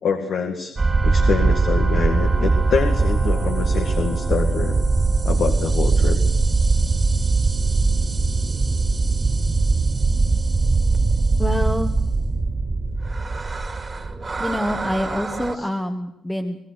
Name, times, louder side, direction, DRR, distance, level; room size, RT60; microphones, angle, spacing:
voice 1, 0.0-0.7 1.0-4.8 5.2-6.2 15.6-15.7, left 6 dB, 65° left, 4 dB, 2.1 m, -25 dB
sound 1, 0.8-15.5, right 3 dB, 30° right, 2.2 m, -21 dB
voice 2, 11.4-12.0 14.4-16.6, left 1 dB, 5° left, 3 dB, 1.5 m, -26 dB
25.0 x 17.0 x 6.5 m, 0.82 s
cardioid pair, 90°, 0 cm